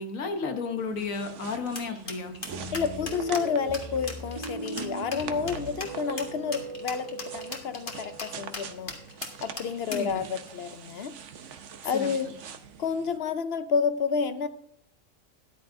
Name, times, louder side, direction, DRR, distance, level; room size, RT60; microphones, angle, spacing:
voice 1, 0.0-2.3 9.9-10.3 11.9-12.1, left 4 dB, 85° left, 5 dB, 1.5 m, -32 dB
sound 1, 0.8-13.2, right 7 dB, 65° right, 1.1 m, -45 dB
sound 2, 1.8-10.1, left 2 dB, 40° left, 1.7 m, -38 dB
sound 3, 2.5-10.0, right 2 dB, 25° right, 1.1 m, -39 dB
voice 2, 2.7-8.9 9.4-11.1 11.8-12.3 12.8-14.5, left 6 dB, 60° left, 11 dB, 0.7 m, -30 dB
13.5 x 10.5 x 2.6 m, 0.68 s
omnidirectional pair, 1.4 m